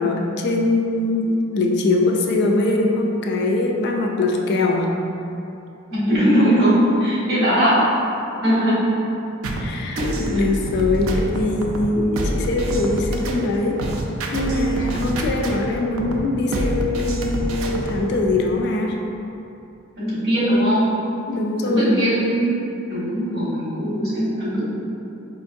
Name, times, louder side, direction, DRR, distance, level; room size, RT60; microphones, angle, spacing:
voice 1, 0.0-5.0 9.6-13.8 14.3-19.0 21.3-22.0, left 2 dB, 55° left, 1 dB, 0.3 m, -22 dB
voice 2, 5.9-7.9 8.4-8.8 9.9-10.0 20.0-20.8 21.6-22.5 22.9-24.6, equal, 50° right, -9 dB, 1.4 m, -19 dB
sound 1, 9.4-18.1, right 1 dB, 85° right, 0.4 m, -26 dB
4.3 x 2.5 x 2.6 m, 2.8 s
head